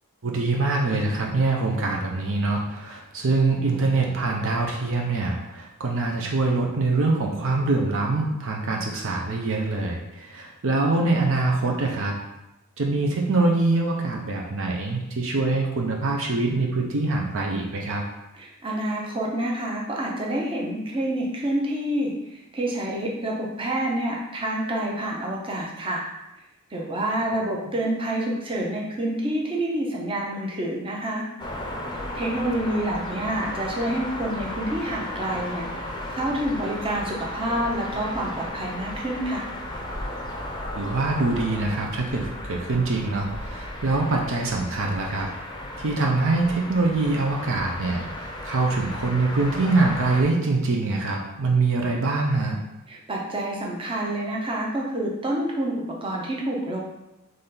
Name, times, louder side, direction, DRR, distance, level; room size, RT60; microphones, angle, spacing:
voice 1, 0.2-12.2 12.8-18.0 40.7-45.3 45.8-52.6, right 3 dB, 60° right, 0 dB, 0.6 m, -24 dB
voice 2, 18.4-26.1 26.7-31.3 32.1-39.5 52.9-56.8, right 1 dB, 25° right, -2 dB, 0.7 m, -28 dB
sound 1, 31.4-50.2, left 1 dB, 20° left, 0.6 m, -35 dB
4.0 x 3.3 x 3.8 m, 0.93 s
head